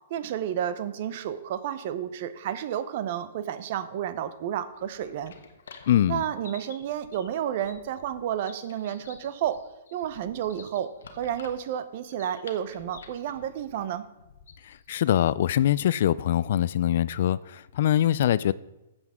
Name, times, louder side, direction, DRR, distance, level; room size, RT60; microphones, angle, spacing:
voice 1, 0.1-5.3 6.1-9.6 9.9-14.1, right 10 dB, 50° right, 13 dB, 0.7 m, -31 dB
sound 1, 4.7-14.9, left 5 dB, 80° left, 1.2 m, -50 dB
voice 2, 5.9-6.2 14.6-18.5, left 11 dB, 60° left, 19 dB, 0.3 m, -23 dB
13.0 x 8.0 x 3.7 m, 0.99 s
hypercardioid pair, 150°, 0 cm